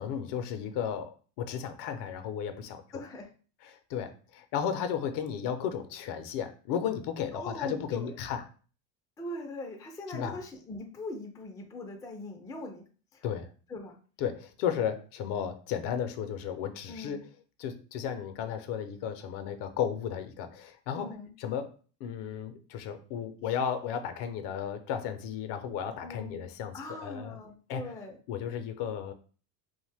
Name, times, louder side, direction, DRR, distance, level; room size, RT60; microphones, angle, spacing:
voice 1, 0.0-2.8 3.6-8.4 10.1-10.4 13.2-13.5 14.2-17.2 17.6-21.1 21.4-27.4 27.7-27.8 28.3-29.1, left 8 dB, 60° left, 9 dB, 0.6 m, -34 dB
voice 2, 2.9-3.3 7.3-8.1 9.2-12.8 13.1-13.2 13.7-14.0 16.9-17.3 20.9-21.3 26.0-26.4 26.7-28.2, left 2 dB, 10° left, 2 dB, 0.3 m, -41 dB
2.5 x 2.2 x 3.3 m, 0.39 s
supercardioid pair, 90°, 48 cm